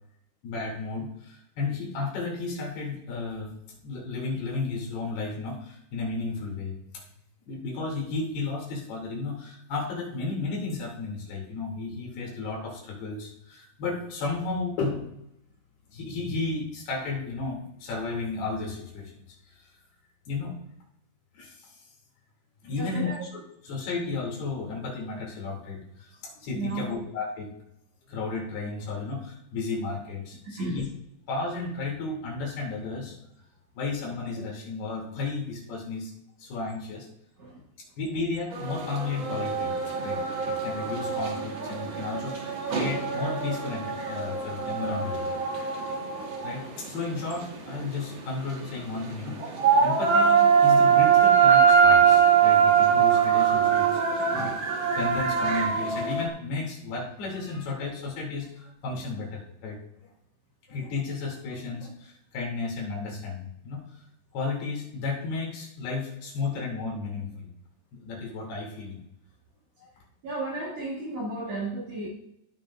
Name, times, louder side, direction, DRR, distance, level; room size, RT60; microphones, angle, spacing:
voice 1, 0.4-7.0 7.5-15.1 15.9-19.1 19.5-19.7 20.3-20.5 21.3-21.7 22.6-23.1 23.6-27.5 28.1-30.9 31.3-33.2 33.8-36.1 36.4-37.1 38.0-39.8 40.0-45.2 46.4-54.5 55.0-59.8 60.7-63.8 64.3-67.5 68.0-69.0 69.8-69.9, left 3 dB, 85° left, -2 dB, 4.7 m, -33 dB
voice 2, 22.7-23.2 26.5-27.0 30.4-30.8 37.4-37.6 54.2-54.6 70.2-72.1, right 2 dB, 55° right, -3 dB, 2.2 m, -34 dB
sound 1, 38.5-56.3, right 7 dB, 80° right, 1.1 m, -23 dB
15.5 x 9.8 x 2.5 m, 0.79 s
omnidirectional pair, 4.5 m